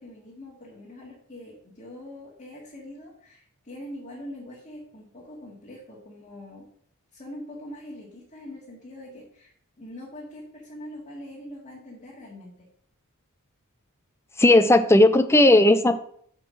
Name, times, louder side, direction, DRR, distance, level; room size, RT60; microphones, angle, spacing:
voice 1, 0.0-6.7 7.1-12.5, left 1 dB, 35° left, -5 dB, 1.9 m, -43 dB
voice 2, 14.4-16.0, left 1 dB, 10° left, 10 dB, 0.5 m, -16 dB
5.6 x 5.1 x 6.4 m, 0.63 s
head